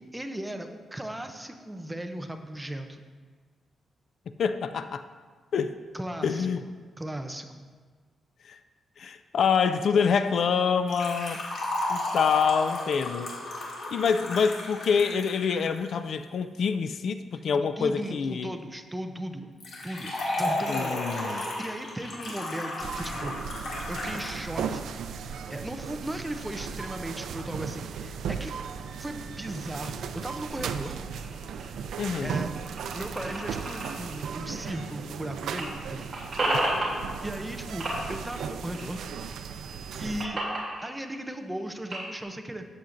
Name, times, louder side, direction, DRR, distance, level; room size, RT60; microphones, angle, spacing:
voice 1, 0.1-3.0 5.9-6.5 7.0-7.7 17.8-19.5 19.8-23.4 23.9-28.5 29.0-31.0 32.2-32.5 32.9-36.1 36.5-39.0 40.0-40.4 40.8-42.6, right 1 dB, 5° right, 5 dB, 0.5 m, -37 dB
voice 2, 4.4-5.0 5.5-5.7 6.2-6.6 8.4-8.6 9.0-11.4 11.9-13.3 13.9-18.5 20.7-21.5 32.0-32.4, left 6 dB, 55° left, 10 dB, 0.3 m, -26 dB
Liquid, 10.9-15.9 19.6-24.4 24.7-24.8 25.7-25.8, left 1 dB, 75° left, 2.1 m, -33 dB
sound 1, 22.8-40.3, right 7 dB, 90° right, 0.4 m, -36 dB
sound 2, 30.4-35.2 35.4-37.6 37.8-39.3 39.6-42.2, right 1 dB, 30° right, 2.7 m, -34 dB
13.0 x 7.9 x 2.5 m, 1.6 s
wide cardioid pair, 165°, 0 cm